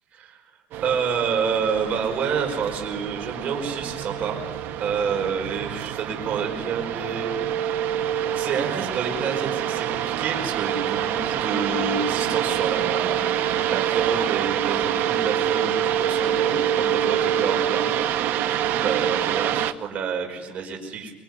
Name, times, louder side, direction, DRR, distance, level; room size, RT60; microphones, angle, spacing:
sound 1, 0.7-19.7, right 10 dB, 60° right, 1.2 m, -26 dB
voice 1, 0.8-4.4 4.8-7.6 8.3-13.2 13.7-17.9 18.4-21.1, right 6 dB, 45° right, 3 dB, 5.2 m, -28 dB
25.0 x 23.0 x 9.8 m, 1.1 s
cardioid pair, 145°, 4 cm